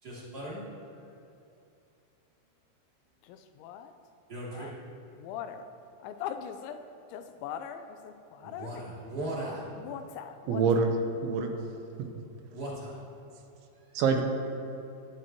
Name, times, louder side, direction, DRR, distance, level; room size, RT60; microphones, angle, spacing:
voice 1, 0.0-0.6 4.3-4.7 8.4-9.7 12.5-13.0 13.7-14.0, right 1 dB, 25° right, -7 dB, 2.6 m, -38 dB
voice 2, 3.2-3.9 4.5-4.7 5.2-5.7 6.0-6.8 7.1-8.8 9.8-10.8, left 8 dB, 90° left, 8 dB, 3.0 m, -41 dB
voice 3, 10.5-10.9 11.2-11.5 13.9-14.2, right 5 dB, 85° right, 4 dB, 3.3 m, -25 dB
19.0 x 11.5 x 3.1 m, 2.8 s
omnidirectional pair, 5.2 m